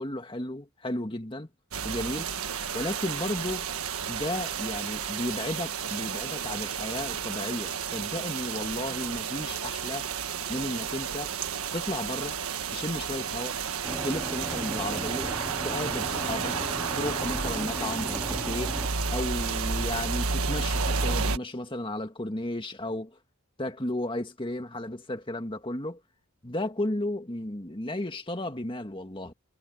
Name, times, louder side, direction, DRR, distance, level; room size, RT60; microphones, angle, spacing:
voice 1, 0.0-1.5 1.8-2.3 2.7-3.7 4.1-10.1 10.5-11.3 11.7-12.4 12.7-13.6 14.0-15.4 15.6-16.6 16.9-18.8 19.1-23.2 23.6-26.0 26.4-29.3, left 1 dB, 25° left, 2.1 m, -34 dB
sound 1, 1.7-21.4, right 6 dB, 80° right, 1.5 m, -31 dB
sound 2, 13.8-18.9, equal, 5° right, 0.7 m, -37 dB
head